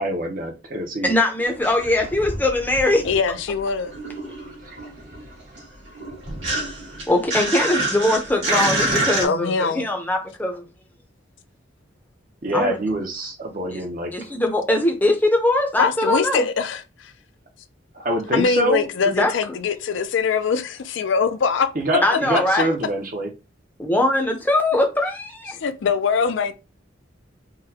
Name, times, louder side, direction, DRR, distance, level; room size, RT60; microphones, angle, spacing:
voice 1, 0.0-1.1 4.4-4.8 12.4-14.1 17.9-18.8 21.7-23.3, right 1 dB, 40° right, 0.6 m, -25 dB
voice 2, 1.0-3.1 7.1-10.6 12.5-12.8 13.7-13.8 14.1-16.4 19.1-19.3 22.0-22.7 23.8-25.6, left 1 dB, 10° left, 0.6 m, -21 dB
sound 1, 1.4-3.4 3.6-9.3, right 2 dB, 65° right, 1.7 m, -27 dB
voice 3, 3.0-3.9 9.2-9.9 15.8-17.1 18.3-21.7 22.1-22.2 25.6-26.5, left 5 dB, 70° left, 0.4 m, -22 dB
3.8 x 2.2 x 2.7 m
head